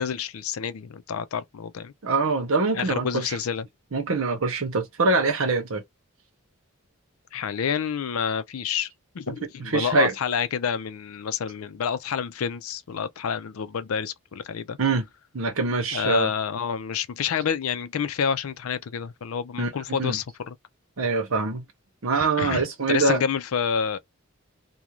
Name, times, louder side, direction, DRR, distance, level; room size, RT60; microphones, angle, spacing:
voice 1, 0.0-1.9 2.7-3.7 7.3-8.9 9.1-14.8 15.9-20.5 22.1-24.0, left 7 dB, 80° left, 0.4 m, -28 dB
voice 2, 2.0-3.4 3.9-5.8 9.3-9.4 9.6-10.1 14.8-15.1 15.3-16.3 19.6-20.2 21.0-21.6 22.0-23.2, right 3 dB, 75° right, 0.8 m, -24 dB
2.4 x 2.2 x 3.0 m
head